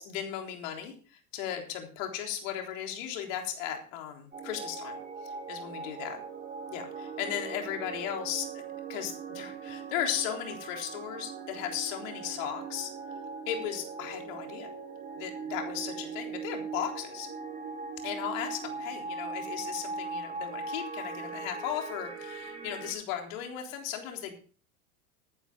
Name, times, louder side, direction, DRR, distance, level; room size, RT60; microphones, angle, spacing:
voice 1, 0.0-5.0 5.2-6.2 6.7-8.6 8.9-12.9 13.5-14.7 15.2-17.3 18.0-24.3, left 10 dB, 60° left, 3 dB, 3.8 m, -36 dB
sound 1, 4.3-22.9, right 4 dB, 20° right, 5.5 m, -40 dB
15.5 x 11.0 x 3.8 m, 0.39 s
hypercardioid pair, 90°, 44 cm